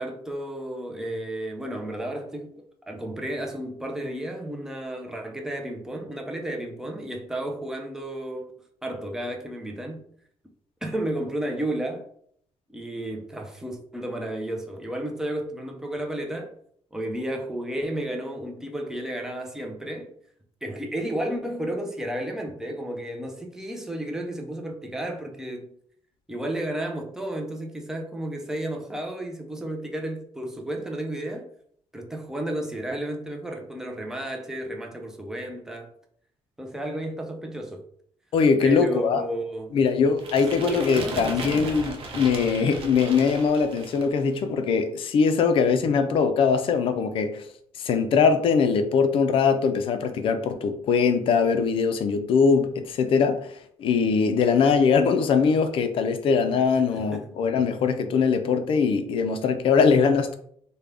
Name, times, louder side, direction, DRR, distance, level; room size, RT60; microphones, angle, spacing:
voice 1, 0.0-8.5 8.8-10.0 10.8-12.1 12.7-16.5 16.9-20.1 20.6-25.7 26.3-31.5 31.9-35.9 36.6-37.8 38.6-39.8 40.5-41.7 56.9-57.3, right 1 dB, 5° right, 0.4 m, -32 dB
voice 2, 38.3-39.2 39.7-47.4 47.8-60.4, left 5 dB, 55° left, 0.4 m, -22 dB
sound 1, 40.2-44.2, right 3 dB, 55° right, 0.5 m, -36 dB
3.5 x 2.2 x 3.3 m
cardioid pair, 155°, 11 cm